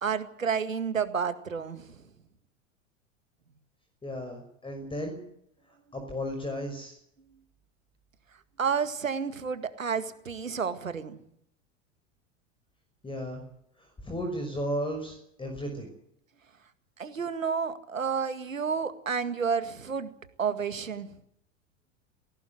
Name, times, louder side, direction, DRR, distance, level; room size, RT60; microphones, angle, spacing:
voice 1, 0.0-2.0 8.6-11.2 17.0-20.1 20.4-21.1, right 6 dB, 90° right, 11 dB, 2.0 m, -30 dB
voice 2, 4.0-5.2 5.9-7.0 13.0-13.4 13.8-15.9, equal, 15° left, 5 dB, 5.9 m, -34 dB
21.0 x 17.5 x 7.9 m, 0.71 s
hypercardioid pair, 90°, 38 cm